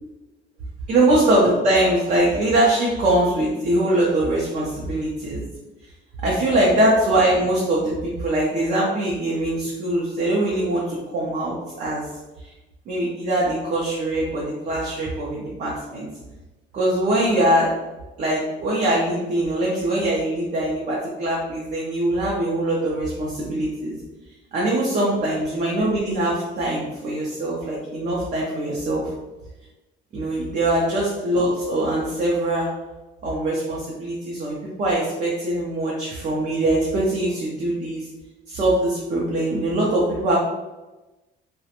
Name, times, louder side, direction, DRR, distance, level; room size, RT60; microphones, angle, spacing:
voice 1, 0.9-5.4 6.2-12.1 12.4-12.5 12.9-16.1 16.7-17.7 18.2-23.9 24.5-29.1 30.1-32.7 33.2-38.1 38.5-40.4, right 1 dB, 40° right, -4 dB, 0.5 m, -22 dB
2.4 x 2.1 x 2.8 m, 1.1 s
cardioid pair, 165°, 19 cm